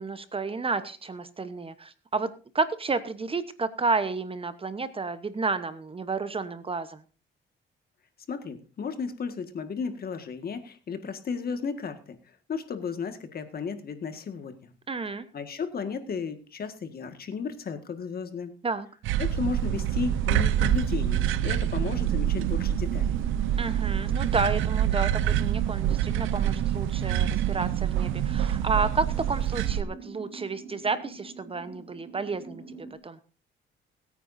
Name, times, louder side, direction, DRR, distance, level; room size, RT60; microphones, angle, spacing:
voice 1, 0.0-7.0 14.9-15.3 18.6-18.9 23.6-32.6 33.0-33.2, right 4 dB, 30° right, 12 dB, 1.0 m, -31 dB
voice 2, 8.3-12.2 12.5-14.7 15.3-18.5 19.2-23.2, left 5 dB, 50° left, 8 dB, 1.8 m, -34 dB
sound 1, 19.0-29.8, right 11 dB, 90° right, 0.7 m, -26 dB
sound 2, 19.7-32.9, right 4 dB, 45° right, 2.1 m, -45 dB
22.0 x 9.2 x 2.7 m, 0.35 s
cardioid pair, 90°, 20 cm